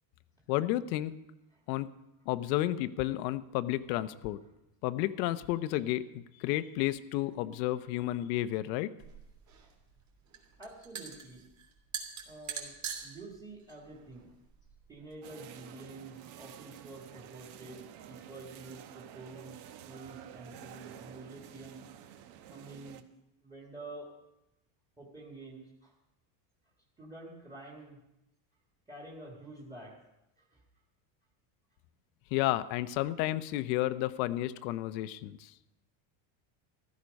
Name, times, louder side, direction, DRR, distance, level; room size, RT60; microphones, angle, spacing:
voice 1, 0.5-1.2 1.7-1.9 2.3-4.4 4.8-8.9 32.3-35.5, left 15 dB, 85° left, 13 dB, 0.9 m, -32 dB
sound 1, 9.0-15.1, right 7 dB, 35° right, 2.9 m, -44 dB
voice 2, 10.6-11.5 12.3-14.3 14.9-21.9 22.5-23.1 23.4-24.2 25.0-25.9 27.0-28.1 28.9-30.0 30.4-30.6, right 2 dB, 10° right, -1 dB, 1.8 m, -48 dB
sound 2, 15.2-23.0, right 10 dB, 50° right, 1.0 m, -50 dB
14.5 x 13.5 x 5.2 m, 0.90 s
cardioid pair, 160°, 49 cm